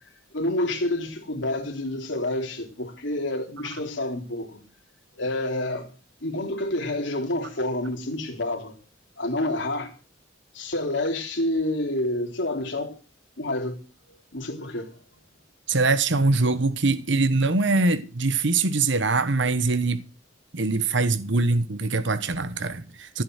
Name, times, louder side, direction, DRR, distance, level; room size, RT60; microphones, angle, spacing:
voice 1, 0.3-4.6 5.2-5.9 6.2-8.8 9.2-9.9 10.5-12.9 13.4-13.8 14.1-14.9, left 1 dB, 65° left, 3.5 m, -28 dB
voice 2, 15.7-20.0 20.5-23.2, right 3 dB, 65° right, 1.1 m, -23 dB
15.5 x 8.5 x 6.4 m
head